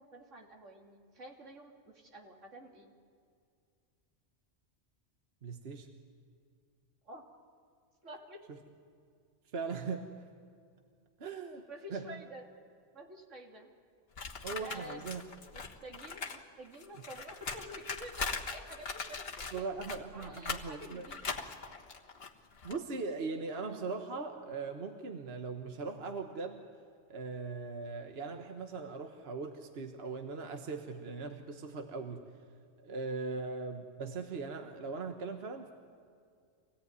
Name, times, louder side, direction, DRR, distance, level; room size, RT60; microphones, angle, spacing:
voice 1, 0.0-2.9 7.0-7.2 8.0-8.4 11.7-12.5 12.9-13.7 14.6-15.1 15.5-19.7 20.1-21.3, equal, 85° right, 0 dB, 3.0 m, -49 dB
voice 2, 5.4-5.9 9.5-10.0 11.2-11.6 11.9-12.2 14.4-15.2 19.5-21.0 22.6-26.6 27.1-32.2 32.8-35.7, right 4 dB, 55° right, 5 dB, 1.5 m, -39 dB
sound 1, 14.2-16.4 16.7-22.8, left 4 dB, 55° left, 1.7 m, -41 dB
25.0 x 17.5 x 9.5 m, 2.3 s
omnidirectional pair, 1.2 m